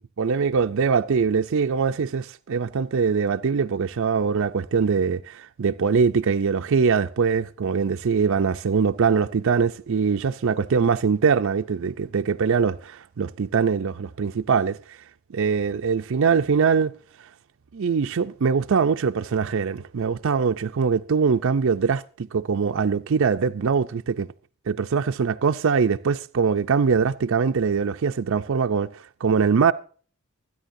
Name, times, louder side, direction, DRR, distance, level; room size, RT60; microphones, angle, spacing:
voice 1, 0.0-15.0 15.3-16.9 17.7-24.3 24.7-29.7, right 5 dB, 65° right, 0.5 m, -22 dB
24.5 x 9.7 x 2.6 m
head